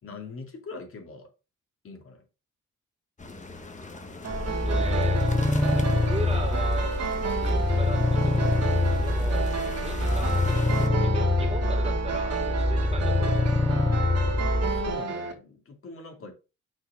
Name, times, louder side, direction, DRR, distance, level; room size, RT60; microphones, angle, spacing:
voice 1, 0.0-1.3 1.8-2.2 14.5-16.3, left 3 dB, 45° left, 2.5 m, -41 dB
sound 1, 3.2-10.9, left 2 dB, 25° left, 1.3 m, -41 dB
sound 2, 4.2-15.3, right 5 dB, 55° right, 1.9 m, -32 dB
sound 3, 4.3-15.0, left 2 dB, 10° left, 0.4 m, -25 dB
voice 2, 4.4-8.7 9.0-13.8, right 3 dB, 20° right, 2.3 m, -39 dB
6.2 x 4.4 x 5.1 m
cardioid pair, 90°, 30 cm